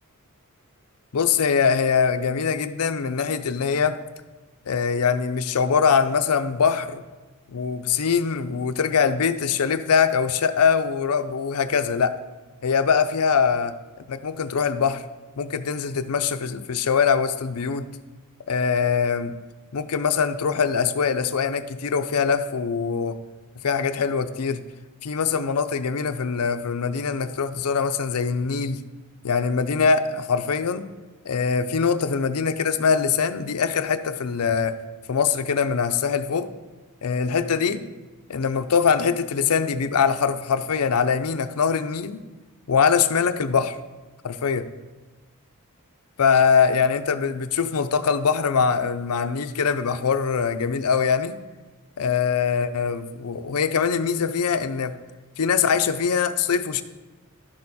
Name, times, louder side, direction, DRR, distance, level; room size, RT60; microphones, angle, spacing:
voice 1, 1.1-4.0 4.7-7.0 7.5-12.2 12.6-13.8 14.1-15.0 15.4-17.9 18.5-19.3 19.7-23.2 23.6-24.6 25.0-28.8 29.2-30.9 31.2-34.8 35.1-36.5 37.0-37.8 38.3-42.2 42.7-43.8 44.2-44.7 46.2-51.4 52.0-54.9 55.4-56.8, left 6 dB, 90° left, 11 dB, 0.5 m, -23 dB
11.5 x 6.6 x 4.2 m, 1.2 s
head